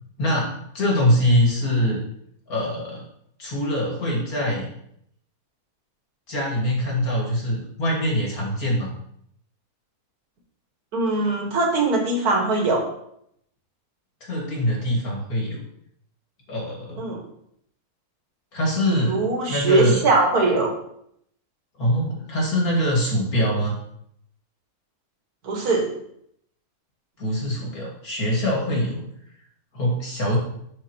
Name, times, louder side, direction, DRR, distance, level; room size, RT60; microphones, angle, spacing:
voice 1, 0.2-2.0 2.5-3.1 3.4-4.7 6.3-8.9 14.2-15.6 16.5-17.0 18.5-19.2 19.5-20.0 21.8-23.8 27.2-29.0 29.7-30.4, equal, 75° left, -3 dB, 2.7 m, -23 dB
voice 2, 10.9-12.8 17.0-17.2 18.9-20.7 25.4-25.9, right 3 dB, 85° right, 2 dB, 1.9 m, -21 dB
12.5 x 4.8 x 3.0 m, 0.71 s
omnidirectional pair, 1.6 m